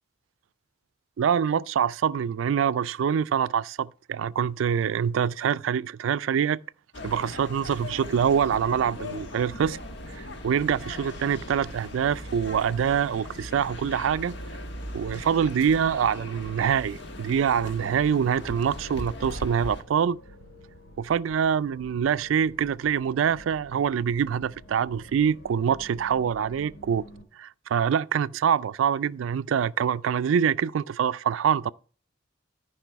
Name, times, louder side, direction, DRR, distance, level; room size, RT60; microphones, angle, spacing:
voice 1, 1.2-6.6 7.0-9.8 10.1-14.4 14.9-20.2 21.0-27.0 27.4-31.7, right 7 dB, 80° right, 0.3 m, -25 dB
sound 1, 6.9-19.8, left 1 dB, 65° left, 1.3 m, -39 dB
sound 2, 8.0-27.2, equal, 80° left, 2.7 m, -50 dB
13.5 x 5.3 x 4.5 m
head